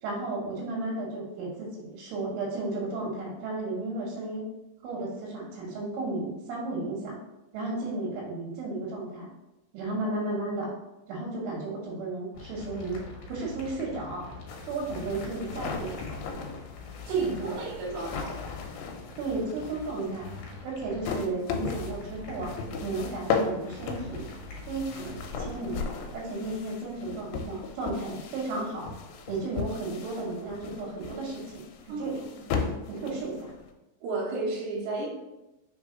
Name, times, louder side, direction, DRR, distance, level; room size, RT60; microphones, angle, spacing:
voice 1, 0.0-4.5 4.8-7.2 7.5-9.3 9.7-10.7 11.1-13.0 13.3-14.3 14.6-15.9 17.1-17.7 19.2-20.3 20.6-22.5 22.8-24.3 24.7-25.9 26.1-28.9 29.3-32.2 32.9-33.5, right 2 dB, 85° right, -5 dB, 3.7 m, -33 dB
sound 1, 12.3-25.8, left 3 dB, 65° left, 2.1 m, -44 dB
sound 2, 14.5-33.7, left 5 dB, 85° left, 3.0 m, -36 dB
voice 2, 17.1-18.4 31.9-32.4 34.0-35.1, right 3 dB, 65° right, -6 dB, 3.3 m, -33 dB
7.1 x 3.5 x 3.8 m, 0.98 s
omnidirectional pair, 5.5 m